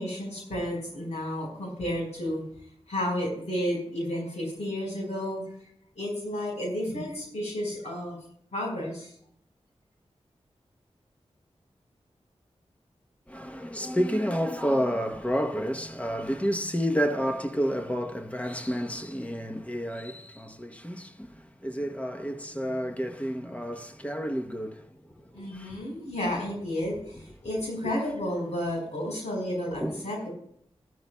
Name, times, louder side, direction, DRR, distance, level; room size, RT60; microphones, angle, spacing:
voice 1, 0.0-2.4 2.9-5.4 5.9-8.2 8.5-9.1 25.3-30.3, left 1 dB, 85° left, 4.4 m, -32 dB
voice 2, 13.3-24.8 25.3-25.8 29.8-30.0, equal, 10° left, 0.9 m, -30 dB
14.5 x 12.5 x 2.2 m
wide cardioid pair, 105°, 11 cm